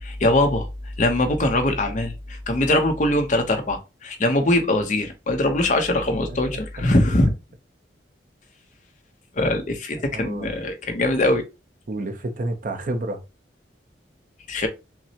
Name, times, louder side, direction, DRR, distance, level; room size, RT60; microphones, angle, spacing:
voice 1, 0.0-7.3 9.3-11.4 14.5-14.7, left 1 dB, 45° left, 0.7 m, -22 dB
voice 2, 10.0-10.6 11.9-13.2, right 2 dB, 50° right, 0.6 m, -30 dB
5.8 x 2.1 x 2.8 m
head